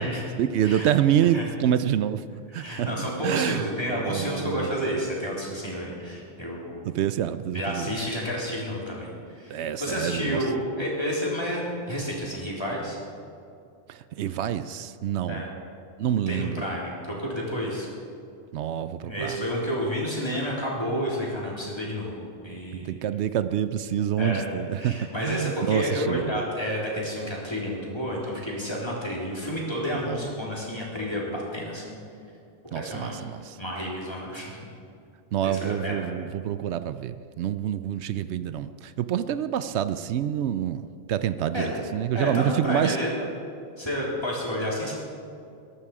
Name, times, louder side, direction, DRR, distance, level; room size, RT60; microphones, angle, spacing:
voice 1, 0.4-3.6 4.0-4.7 6.9-8.0 9.5-10.4 13.9-15.4 16.0-16.6 18.5-19.4 22.7-26.4 29.9-30.3 32.7-33.6 35.3-43.0, right 10 dB, 80° right, 12 dB, 0.8 m, -27 dB
voice 2, 2.5-6.8 7.5-13.0 15.3-15.5 16.3-17.9 19.0-23.0 24.2-24.4 24.8-32.0 32.7-33.2 33.6-34.6 35.4-36.1 41.5-41.7 42.1-43.1 43.8-44.9, equal, 25° left, -5 dB, 3.7 m, -30 dB
21.5 x 11.5 x 4.9 m, 2.5 s
omnidirectional pair, 1.1 m